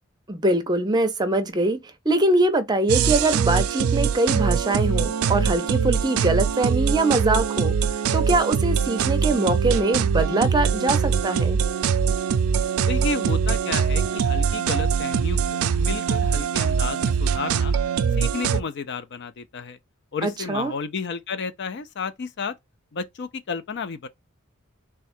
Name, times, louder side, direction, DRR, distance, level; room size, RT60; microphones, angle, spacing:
voice 1, 0.3-11.6 20.2-20.7, right 2 dB, 20° right, 0.5 m, -23 dB
sound 1, 2.9-18.6, right 6 dB, 80° right, 0.4 m, -22 dB
voice 2, 12.8-17.7 18.2-19.8 20.1-22.5 22.9-24.1, left 5 dB, 55° left, 0.4 m, -32 dB
3.6 x 2.3 x 4.2 m
head